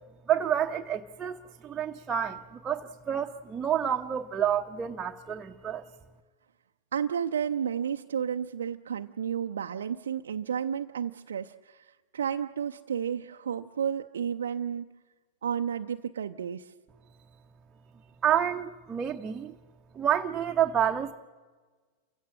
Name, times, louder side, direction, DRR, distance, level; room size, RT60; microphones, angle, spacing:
voice 1, 0.3-5.9 18.2-19.5 19.9-21.1, right 9 dB, 20° right, 2 dB, 0.9 m, -29 dB
voice 2, 6.9-14.9 15.4-16.7, right 8 dB, 65° right, 5 dB, 0.6 m, -32 dB
29.0 x 16.0 x 7.4 m, 1.4 s
figure-of-eight pair, 90°, 0 cm